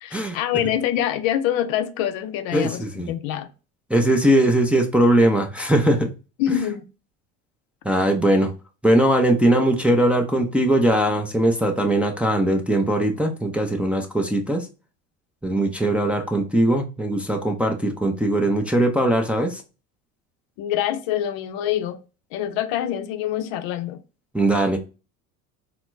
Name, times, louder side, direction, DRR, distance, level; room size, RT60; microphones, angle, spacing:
voice 1, 0.0-3.5 6.4-6.8 20.6-22.0 22.3-24.0, left 11 dB, 60° left, 0.6 m, -25 dB
voice 2, 2.5-3.1 3.9-6.1 7.8-8.5 8.8-14.7 15.4-19.6 24.3-24.8, right 1 dB, 5° right, 0.5 m, -20 dB
4.2 x 2.1 x 2.5 m
supercardioid pair, 95°, 40 cm